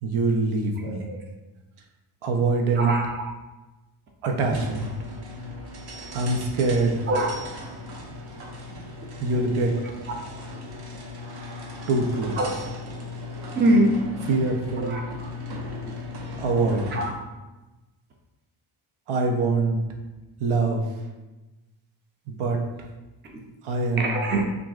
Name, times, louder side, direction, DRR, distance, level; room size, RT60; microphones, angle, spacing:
voice 1, 0.0-1.1 2.2-2.9 4.2-4.9 6.1-7.1 9.2-9.7 11.9-12.5 14.3-15.0 16.4-17.0 19.1-19.8 20.4-20.9 22.3-22.6 23.6-24.2, right 3 dB, 85° right, 2 dB, 0.7 m, -24 dB
voice 2, 0.8-1.2 2.8-3.2 7.1-7.4 10.1-10.2 12.4-12.5 13.5-14.0 14.8-15.3 16.9-17.1 23.3-23.4 24.0-24.4, right 1 dB, 25° right, 0 dB, 0.4 m, -24 dB
sound 1, 4.4-17.3, left 2 dB, 50° right, 0.8 m, -37 dB
6.0 x 2.6 x 2.4 m, 1.1 s
wide cardioid pair, 135°, 49 cm